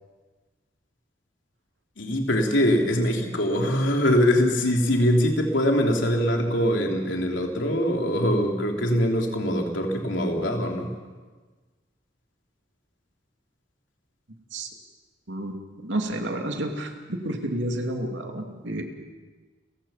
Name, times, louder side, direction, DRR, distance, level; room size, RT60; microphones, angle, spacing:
voice 1, 2.0-10.9, equal, 85° left, 1 dB, 3.4 m, -23 dB
voice 2, 15.3-18.8, right 1 dB, 75° right, 3 dB, 2.6 m, -30 dB
30.0 x 16.0 x 5.8 m, 1.3 s
head